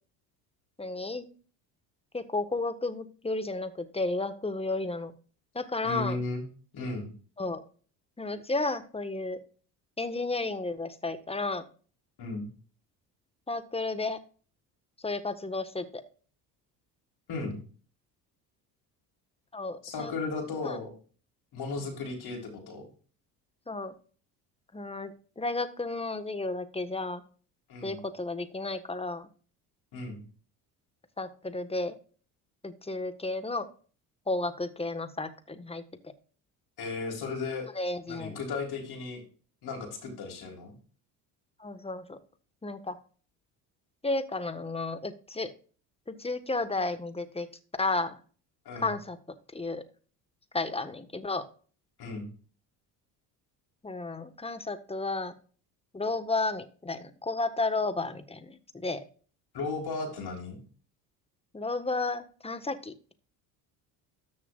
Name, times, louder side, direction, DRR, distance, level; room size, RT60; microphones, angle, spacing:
voice 1, 0.8-1.3 2.1-5.1 5.5-6.2 7.4-7.6 8.2-9.4 10.0-11.6 13.5-14.2 15.0-16.0 19.5-20.1 20.6-20.8 23.7-23.9 24.7-27.2 27.8-29.3 31.2-32.0 32.6-33.7 34.3-36.1 37.7-38.4 41.6-42.2 42.6-43.0 44.0-45.5 46.1-47.5 47.8-48.2 48.8-49.2 49.5-49.8 50.5-51.4 53.8-55.3 55.9-59.0 61.5-63.1, left 3 dB, 10° left, 10 dB, 1.4 m, -32 dB
voice 2, 5.8-6.4 6.7-7.1 12.2-12.5 17.3-17.6 19.8-20.9 21.5-22.8 27.7-28.0 29.9-30.2 36.8-37.7 38.1-39.2 39.6-40.7 48.7-48.9 52.0-52.3 59.5-60.6, left 3 dB, 55° left, 0 dB, 4.0 m, -35 dB
13.5 x 6.6 x 2.4 m, 0.39 s
hypercardioid pair, 70°, 47 cm